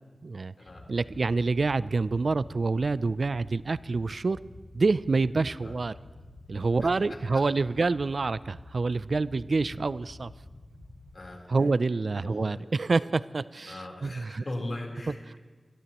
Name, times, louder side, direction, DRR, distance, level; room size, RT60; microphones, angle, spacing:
voice 1, 0.2-0.5 0.9-4.4 4.7-5.9 6.5-10.3 11.5-14.4 15.1-15.4, right 3 dB, 70° right, 17 dB, 0.3 m, -27 dB
sound 1, 0.7-11.3, left 2 dB, 85° left, 1.8 m, -49 dB
voice 2, 12.2-12.6 13.7-15.4, left 1 dB, 60° left, -1 dB, 3.7 m, -38 dB
22.0 x 15.5 x 3.0 m, 1.4 s
cardioid pair, 50°, 0 cm